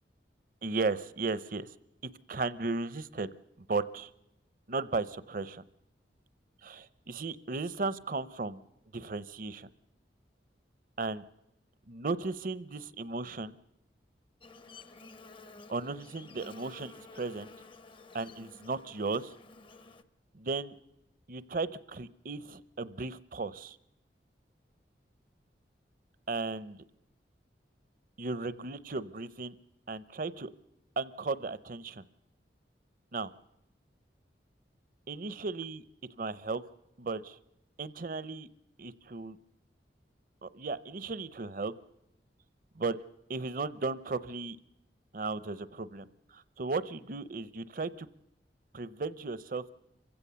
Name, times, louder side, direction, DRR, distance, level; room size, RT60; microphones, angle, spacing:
voice 1, 0.6-1.7 2.3-3.3 3.6-4.1 4.7-5.6 6.6-8.6 8.9-9.7 11.0-11.2 11.9-13.5 15.7-17.5 18.1-19.3 20.3-20.7 21.3-23.8 26.3-26.8 28.2-29.5 29.9-30.5 31.0-32.0 33.1-33.3 35.1-35.8 36.2-36.6 37.0-37.4 37.8-38.5 38.8-39.4 40.4-41.7 42.8-43.0 43.3-44.6 45.1-48.1 48.7-49.7, right 3 dB, 50° right, 16 dB, 0.7 m, -35 dB
Buzz, 14.4-20.0, left 3 dB, 30° left, 0.6 m, -52 dB
26.0 x 16.0 x 6.9 m, 0.86 s
head